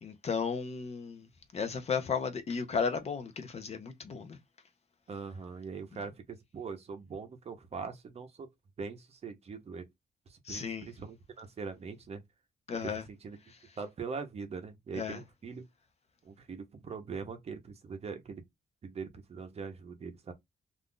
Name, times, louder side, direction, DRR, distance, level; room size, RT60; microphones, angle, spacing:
voice 1, 0.0-1.3 1.5-4.4 10.5-10.9 12.7-13.0 14.9-15.2, left 6 dB, 40° left, 0.6 m, -34 dB
voice 2, 5.1-8.5 8.8-9.9 10.3-12.2 12.8-13.4 13.8-15.6 16.2-18.4 18.8-20.3, right 5 dB, 40° right, 0.7 m, -42 dB
2.5 x 2.3 x 3.6 m
wide cardioid pair, 170°, 16 cm